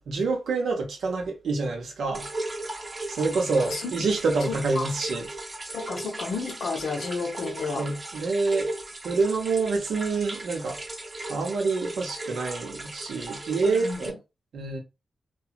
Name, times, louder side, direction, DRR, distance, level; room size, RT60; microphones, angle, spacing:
voice 1, 0.1-2.3 3.1-5.3 7.7-8.7 9.0-10.8 11.3-14.2 14.5-14.8, right 4 dB, 85° right, 0.8 m, -27 dB
sound 1, 2.1-14.1, right 2 dB, 35° right, 0.7 m, -37 dB
voice 2, 3.6-3.9 4.5-4.9 5.7-7.9 13.6-14.1, left 4 dB, 75° left, 0.5 m, -32 dB
2.8 x 2.2 x 2.4 m
supercardioid pair, 45°, 0 cm